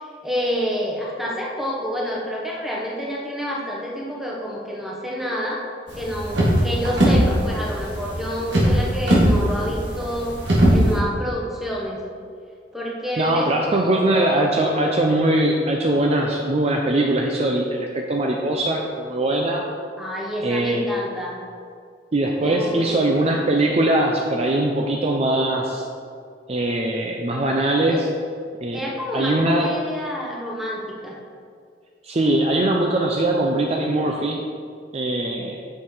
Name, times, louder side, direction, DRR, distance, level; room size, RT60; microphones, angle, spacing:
voice 1, 0.2-5.6 5.9-10.4 10.7-12.0 12.7-14.5 20.0-21.4 22.4-23.0 23.3-23.4 27.9-28.1 28.7-31.2, equal, ahead, -4 dB, 1.2 m, -28 dB
sound 1, 5.9-11.0, equal, 70° right, 2.0 m, -19 dB
voice 2, 13.2-19.6 20.4-20.9 22.1-25.9 26.5-28.1 28.6-28.8 29.1-29.7 32.0-34.4 34.9-35.6, right 1 dB, 35° right, 0 dB, 0.6 m, -21 dB
6.7 x 6.0 x 4.5 m, 2.2 s
head